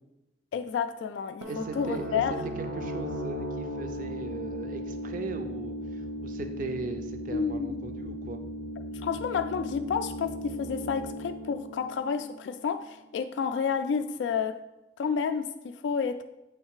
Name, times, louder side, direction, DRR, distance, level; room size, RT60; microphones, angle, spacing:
voice 1, 0.5-2.4 7.3-7.8 9.0-14.6 15.0-16.2, left 6 dB, 85° left, 9 dB, 0.3 m, -30 dB
sound 1, 1.4-12.9, equal, 75° right, 0.9 m, -37 dB
voice 2, 1.5-8.4, right 3 dB, 50° right, 7 dB, 0.4 m, -38 dB
7.9 x 3.2 x 4.7 m, 0.99 s
head